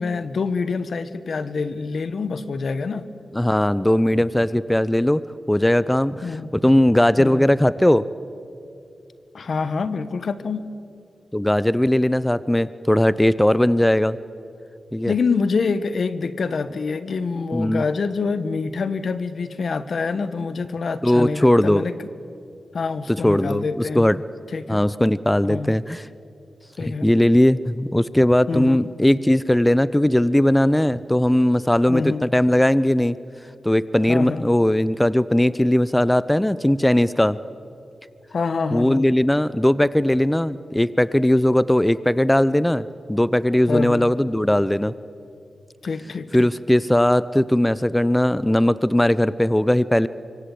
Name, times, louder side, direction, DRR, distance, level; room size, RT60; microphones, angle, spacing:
voice 1, 0.0-3.1 6.2-6.5 7.2-7.4 9.3-10.7 15.0-21.9 22.7-24.0 24.5-24.8 25.5-25.7 26.8-27.1 28.5-28.8 31.9-32.2 34.1-34.4 38.3-39.0 43.7-44.1 45.8-46.5, left 4 dB, 70° left, 12 dB, 1.3 m, -26 dB
voice 2, 3.3-6.3 6.5-8.0 11.3-14.2 14.9-15.1 17.5-17.8 21.0-21.9 23.1-24.2 24.7-26.1 27.0-33.2 33.6-37.4 38.7-44.9 46.3-50.1, left 1 dB, 10° left, 17 dB, 0.7 m, -19 dB
25.0 x 24.0 x 8.5 m, 2.6 s
cardioid pair, 50°, 0 cm